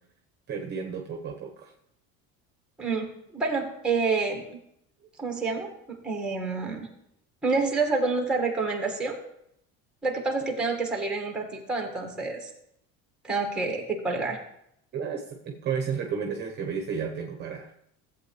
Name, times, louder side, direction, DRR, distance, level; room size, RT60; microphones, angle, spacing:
voice 1, 0.5-1.7 14.9-17.7, right 6 dB, 30° right, 2 dB, 1.0 m, -32 dB
voice 2, 2.8-4.4 5.2-6.9 7.4-9.2 10.0-12.5 13.2-14.4, right 4 dB, 5° right, 3 dB, 1.6 m, -28 dB
15.0 x 8.1 x 3.2 m, 0.74 s
cardioid pair, 155°, 33 cm